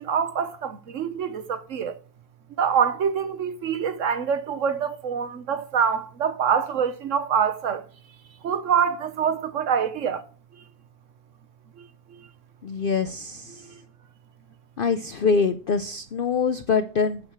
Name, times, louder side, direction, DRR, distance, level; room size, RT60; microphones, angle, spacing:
voice 1, 0.0-2.0 2.6-7.8 8.4-10.2 11.8-11.9, right 7 dB, 60° right, 1.1 m, -25 dB
voice 2, 12.6-13.6 14.8-17.2, left 5 dB, 70° left, 0.5 m, -24 dB
8.7 x 6.5 x 5.9 m
omnidirectional pair, 1.7 m